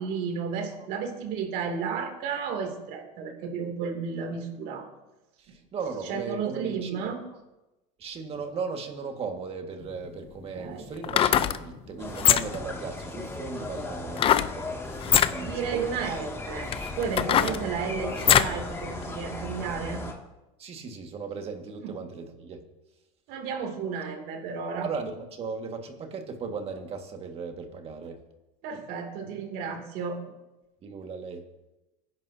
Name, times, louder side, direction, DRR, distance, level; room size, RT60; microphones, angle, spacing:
voice 1, 0.0-4.9 6.1-7.2 10.5-10.9 15.4-16.7 17.0-20.0 21.8-21.9 23.3-24.9 28.6-30.2, right 6 dB, 60° right, 3 dB, 2.7 m, -33 dB
voice 2, 5.4-7.1 8.0-16.0 17.4-17.6 20.6-22.6 24.8-28.2 30.8-31.5, right 5 dB, 35° right, 4 dB, 1.8 m, -37 dB
sound 1, 9.8-9.9 11.0-11.6 12.1-12.7 14.2-14.5 15.0-15.3 16.1-16.2 16.7-18.6 19.0-19.1, left 10 dB, 30° left, 0.6 m, -22 dB
sound 2, 12.0-20.1, left 2 dB, 15° left, 2.2 m, -37 dB
25.0 x 10.5 x 2.8 m, 1.0 s
supercardioid pair, 135°, 17 cm